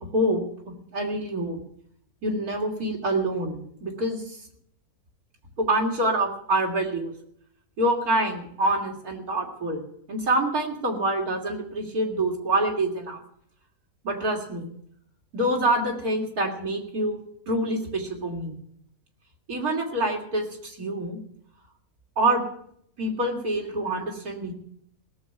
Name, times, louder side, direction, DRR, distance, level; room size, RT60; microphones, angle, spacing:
voice 1, 0.1-1.6 2.2-4.4 5.6-7.1 7.8-9.8 10.1-13.2 14.0-14.7 15.3-17.2 17.5-18.5 19.5-21.2 22.2-22.4 23.0-24.5, right 1 dB, 75° right, 1 dB, 3.4 m, -26 dB
18.0 x 7.4 x 9.2 m, 0.67 s
omnidirectional pair, 1.6 m